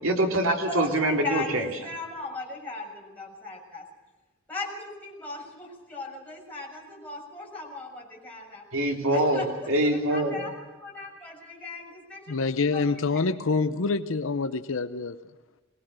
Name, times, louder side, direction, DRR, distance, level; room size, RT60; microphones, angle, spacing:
voice 1, 0.0-1.7 8.7-10.4, right 1 dB, 70° right, 3.2 m, -24 dB
voice 2, 1.2-3.8 4.5-8.6 9.1-9.7 10.1-10.5 10.8-12.3 12.7-12.8, left 3 dB, 10° left, 6.8 m, -37 dB
voice 3, 12.3-15.2, left 4 dB, 70° left, 0.7 m, -26 dB
22.0 x 19.0 x 6.4 m
head